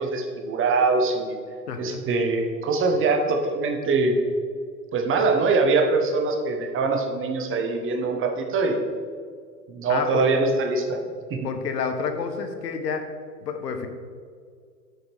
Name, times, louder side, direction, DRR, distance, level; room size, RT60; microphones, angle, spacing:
voice 1, 0.0-1.4 1.8-4.2 4.9-8.8 9.7-11.0 11.3-11.5, right 3 dB, 25° right, 3 dB, 1.0 m, -23 dB
voice 2, 1.7-2.0 9.9-10.2 11.4-13.0 13.4-13.9, left 6 dB, 75° left, 7 dB, 1.0 m, -29 dB
8.0 x 6.2 x 3.4 m, 2.1 s
hypercardioid pair, 95°, 50 cm